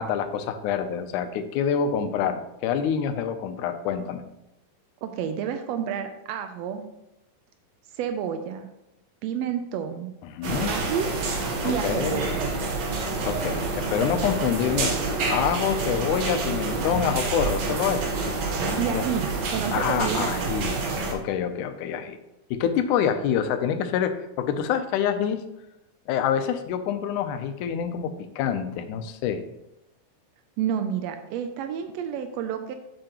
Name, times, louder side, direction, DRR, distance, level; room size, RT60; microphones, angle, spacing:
voice 1, 0.0-4.2 10.2-10.7 11.6-12.2 13.2-18.1 18.9-19.0 19.7-20.7 21.1-22.2 22.5-25.4 26.1-29.4, left 8 dB, 85° left, 9 dB, 2.1 m, -26 dB
voice 2, 5.0-6.9 8.0-8.7 9.2-10.1 10.7-11.1 11.6-12.5 18.8-20.5 30.6-32.8, right 8 dB, 90° right, 8 dB, 1.5 m, -30 dB
sound 1, 10.4-21.1, right 3 dB, 65° right, 2.3 m, -28 dB
7.6 x 7.6 x 2.9 m, 0.90 s
omnidirectional pair, 3.5 m